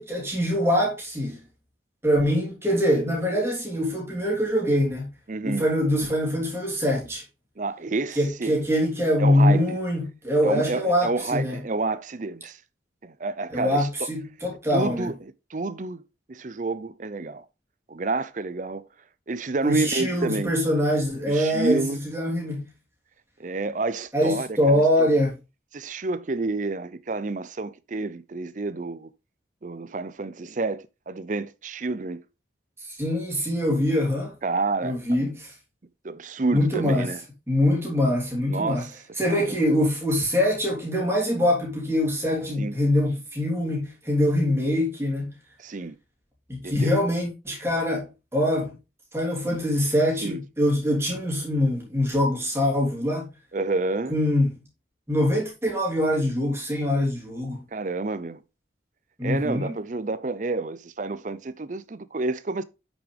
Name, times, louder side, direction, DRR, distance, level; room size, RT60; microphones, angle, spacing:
voice 1, 0.0-1.4 2.0-5.1 5.4-7.2 8.2-11.6 13.5-15.1 19.6-22.6 24.1-25.3 32.8-34.3 34.8-35.5 36.5-37.1 37.5-38.9 39.2-45.3 46.5-48.7 49.1-53.3 54.1-54.5 55.1-57.6 59.2-59.8, left 1 dB, 15° right, 3.1 m, -24 dB
voice 2, 5.3-5.7 7.6-8.6 9.2-9.6 10.4-12.6 13.0-14.1 14.7-16.0 16.3-17.5 17.9-18.8 19.3-20.5 21.3-22.1 23.4-25.1 25.7-29.1 29.6-32.2 34.4-35.3 36.0-37.2 38.5-39.0 39.3-39.6 42.6-42.8 45.6-46.0 46.6-46.9 49.5-49.6 50.2-50.4 53.5-54.2 57.7-58.4 59.2-62.6, right 3 dB, 40° right, 0.5 m, -29 dB
8.4 x 6.1 x 3.3 m
head